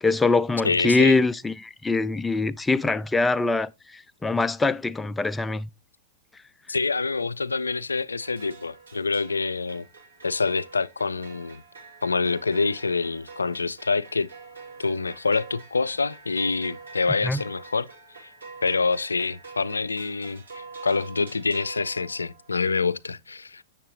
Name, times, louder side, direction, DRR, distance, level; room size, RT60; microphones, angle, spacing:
voice 1, 0.0-5.7 17.2-17.4, left 3 dB, 10° left, 0.4 m, -23 dB
voice 2, 0.6-1.1 6.7-9.9 10.2-11.6 12.0-14.3 14.8-17.9 18.2-18.3 18.6-23.6, left 4 dB, 85° left, 0.3 m, -26 dB
sound 1, 8.2-22.6, right 4 dB, 85° right, 2.5 m, -45 dB
7.3 x 7.1 x 3.0 m
figure-of-eight pair, 100°, 0 cm